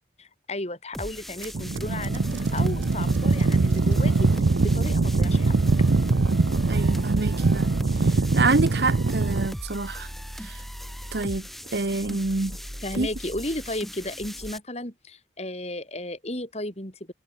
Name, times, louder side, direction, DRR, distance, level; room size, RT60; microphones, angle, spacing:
voice 1, 0.2-2.2 2.5-4.3 4.6-5.5 12.8-17.1, left 1 dB, 35° left, 4.3 m, -34 dB
sound 1, 0.9-14.6, equal, ahead, 3.2 m, -38 dB
sound 2, 1.4-9.5, right 3 dB, 85° right, 0.7 m, -22 dB
voice 2, 6.7-7.7 8.3-10.1 10.4-10.6 11.1-11.4 11.7-12.6 13.0-13.1, right 3 dB, 60° right, 1.1 m, -26 dB
head